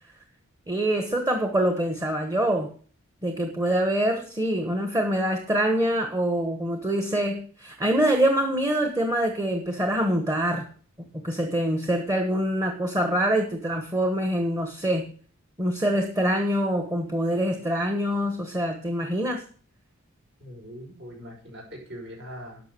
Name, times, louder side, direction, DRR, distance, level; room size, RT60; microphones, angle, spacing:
voice 1, 0.7-2.7 3.2-10.7 11.1-15.1 15.6-19.4, right 1 dB, 15° right, 5 dB, 1.3 m, -25 dB
voice 2, 20.4-22.6, equal, 60° right, -1 dB, 5.9 m, -41 dB
11.5 x 6.7 x 6.8 m, 0.42 s
head